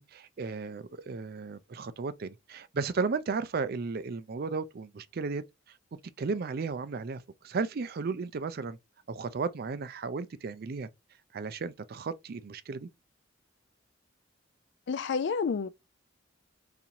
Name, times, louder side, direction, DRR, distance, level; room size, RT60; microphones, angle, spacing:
voice 1, 0.0-5.4 6.2-8.8 9.1-10.9 11.3-12.9, right 4 dB, 50° right, 0.4 m, -34 dB
voice 2, 14.9-15.7, left 5 dB, 60° left, 0.4 m, -29 dB
4.0 x 2.9 x 2.6 m
head